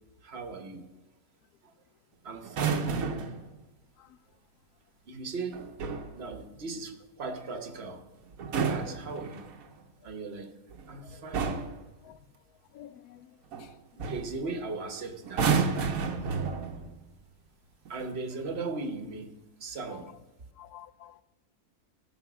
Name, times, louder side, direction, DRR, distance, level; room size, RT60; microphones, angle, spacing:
voice 1, 0.2-0.9 1.6-1.7 2.2-2.9 5.1-5.7 6.1-8.0 8.5-9.5 10.0-10.5 10.9-11.8 14.0-15.7 17.9-20.1, right 3 dB, 45° right, 1.3 m, -38 dB
sound 1, 2.4-3.4 5.5-6.1 8.3-9.7 10.7-10.9 11.3-11.8 13.5-13.7 14.0-14.3 15.3-16.9 17.9-18.1, right 5 dB, 65° right, 1.4 m, -30 dB
voice 2, 12.7-13.3 20.6-21.2, left 11 dB, 85° left, 1.1 m, -49 dB
16.0 x 7.7 x 6.1 m
omnidirectional pair, 1.6 m